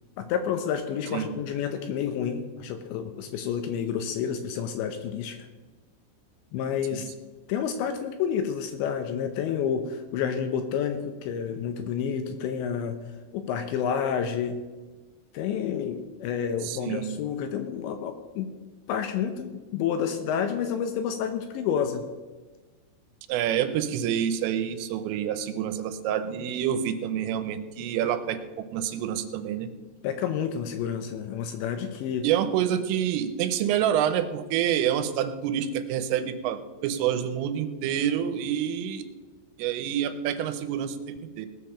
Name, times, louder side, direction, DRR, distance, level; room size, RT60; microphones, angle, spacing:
voice 1, 0.2-5.4 6.5-7.1 7.5-13.0 13.3-14.6 15.3-18.5 18.9-22.1 30.0-32.3, left 8 dB, 80° left, 7 dB, 2.8 m, -29 dB
voice 2, 16.6-17.2 23.3-28.4 28.7-29.7 32.2-39.0 39.6-41.5, right 9 dB, 85° right, 10 dB, 3.4 m, -27 dB
19.0 x 6.7 x 5.7 m, 1.3 s
omnidirectional pair, 5.8 m